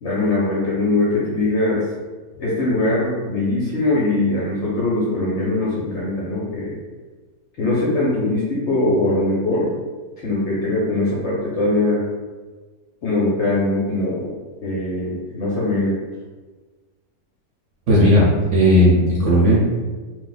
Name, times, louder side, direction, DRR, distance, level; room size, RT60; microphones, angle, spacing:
voice 1, 0.0-1.8 2.4-6.8 7.6-9.7 10.2-12.0 13.0-14.3 14.6-16.0, left 2 dB, 60° left, -6 dB, 0.8 m, -21 dB
voice 2, 17.9-19.6, equal, 60° right, -6 dB, 0.9 m, -15 dB
2.6 x 2.2 x 3.8 m, 1.3 s
omnidirectional pair, 1.8 m